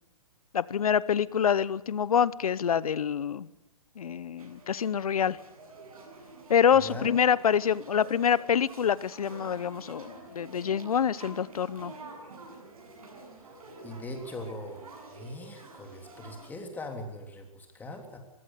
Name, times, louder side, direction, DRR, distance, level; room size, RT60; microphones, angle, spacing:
voice 1, 0.5-3.5 4.0-5.4 6.5-11.9, left 8 dB, 75° left, 20 dB, 0.9 m, -26 dB
sound 1, 4.4-16.5, right 3 dB, 70° right, 7.9 m, -48 dB
voice 2, 13.8-14.8 15.1-18.2, left 1 dB, 10° left, 4 dB, 3.2 m, -40 dB
21.5 x 15.5 x 8.0 m, 0.99 s
hypercardioid pair, 140°, 19 cm